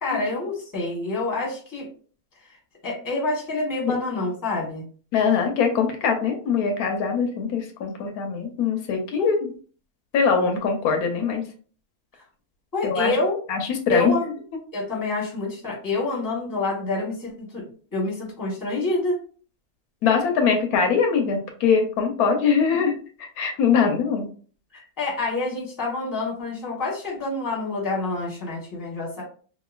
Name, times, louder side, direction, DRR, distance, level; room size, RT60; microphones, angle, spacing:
voice 1, 0.0-1.9 2.8-4.9 9.1-9.4 12.7-13.4 13.9-14.3 14.7-17.6 17.9-19.2 24.7-29.2, left 2 dB, 15° left, -3 dB, 0.9 m, -27 dB
voice 2, 5.1-9.5 10.1-11.4 12.8-13.1 13.5-14.1 20.0-24.3, left 6 dB, 80° left, 4 dB, 1.1 m, -22 dB
2.9 x 2.5 x 2.3 m, 0.42 s
omnidirectional pair, 1.6 m